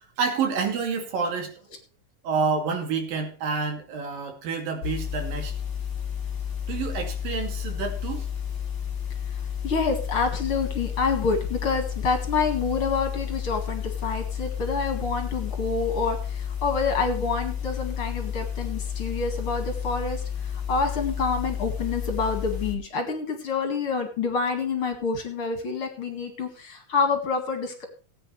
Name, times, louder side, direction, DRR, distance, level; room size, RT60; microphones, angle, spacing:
voice 1, 0.2-1.5 2.2-5.5 6.7-8.3, right 5 dB, 85° right, 3 dB, 4.2 m, -28 dB
sound 1, 4.8-22.8, left 8 dB, 25° left, 3.0 m, -31 dB
voice 2, 9.6-27.8, left 4 dB, 45° left, 5 dB, 2.6 m, -27 dB
18.0 x 9.0 x 3.3 m, 0.39 s
omnidirectional pair, 3.9 m